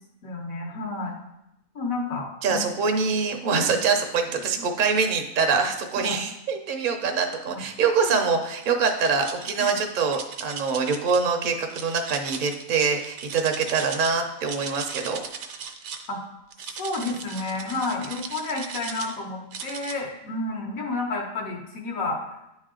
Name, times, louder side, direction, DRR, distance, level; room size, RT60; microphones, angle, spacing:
voice 1, 0.2-1.1 1.7-2.6 3.7-3.8 6.0-6.2 7.5-7.6 9.6-9.8 16.1-16.2 16.6-22.2, left 3 dB, 75° left, -1 dB, 1.4 m, -31 dB
voice 2, 2.4-15.2, right 5 dB, 55° right, 4 dB, 0.6 m, -24 dB
sound 1, 8.6-9.7 10.1-11.2 11.7-14.1 14.4-16.1 16.5-19.1 19.5-20.0, right 6 dB, 75° right, 1.0 m, -37 dB
9.3 x 3.2 x 3.7 m, 0.85 s
omnidirectional pair, 1.5 m